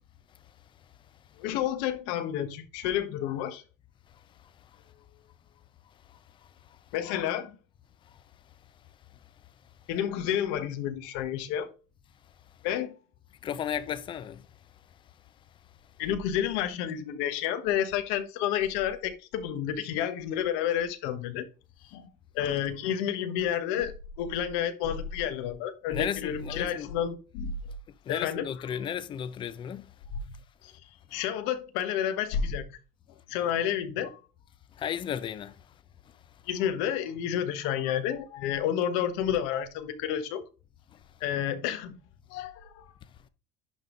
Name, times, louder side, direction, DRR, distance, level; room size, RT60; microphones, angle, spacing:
voice 1, 1.4-3.6 6.9-7.6 9.9-11.7 12.6-13.0 16.0-21.5 21.9-22.1 22.3-27.5 28.1-28.5 30.6-30.7 31.1-32.8 33.3-34.2 36.5-40.4 41.2-42.0 42.3-42.9, left 9 dB, 70° left, 1.2 m, -30 dB
voice 2, 13.4-14.4 25.9-26.9 28.1-29.9 34.8-35.5, left 9 dB, 25° left, 0.5 m, -34 dB
10.5 x 3.6 x 3.8 m
cardioid pair, 160°, 19 cm